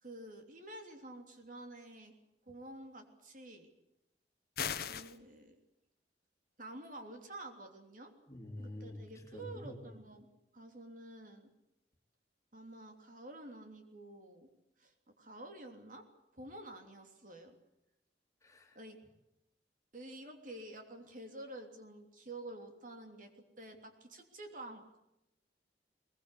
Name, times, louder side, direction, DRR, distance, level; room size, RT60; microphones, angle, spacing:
voice 1, 0.0-2.1 2.5-3.7 4.9-5.5 6.6-8.1 8.6-11.5 12.5-14.5 14.8-16.0 16.3-17.6 18.7-19.0 19.9-23.3 23.6-25.0, right 1 dB, 50° right, 4 dB, 3.3 m, -49 dB
sound 1, 4.6-5.2, left 8 dB, 60° left, 1.2 m, -37 dB
voice 2, 8.3-9.8 18.4-18.8, left 1 dB, 20° left, 2 dB, 3.6 m, -47 dB
22.0 x 22.0 x 8.4 m, 0.86 s
head